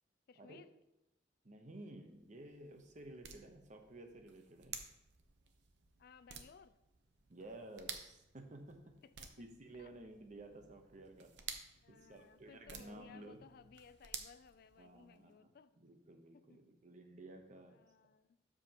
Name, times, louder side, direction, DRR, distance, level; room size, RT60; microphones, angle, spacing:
voice 1, 0.3-0.7 6.0-6.8 9.0-9.4 9.8-9.9 11.8-15.8 16.3-16.6 17.7-18.4, left 6 dB, 60° left, 13 dB, 0.4 m, -61 dB
voice 2, 1.4-4.8 7.3-9.0 9.4-11.3 11.9-13.4 14.8-15.5 15.8-17.8, right 2 dB, 45° right, 5 dB, 0.9 m, -54 dB
sound 1, 2.0-15.2, right 7 dB, 70° right, 0.8 m, -53 dB
12.5 x 5.0 x 2.9 m, 0.91 s
head